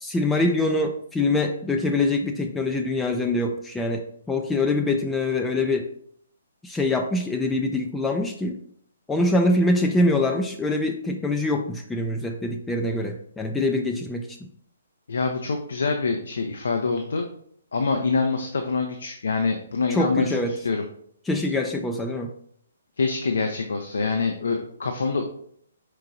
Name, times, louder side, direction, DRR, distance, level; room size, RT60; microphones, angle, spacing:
voice 1, 0.0-5.9 6.6-8.6 9.1-14.5 19.9-20.5 21.3-22.3, left 2 dB, 5° left, 3 dB, 0.3 m, -24 dB
voice 2, 15.1-17.3 17.7-20.8 23.0-25.2, left 4 dB, 65° left, 5 dB, 0.5 m, -25 dB
4.6 x 4.5 x 2.5 m, 0.65 s
figure-of-eight pair, 130°, 0 cm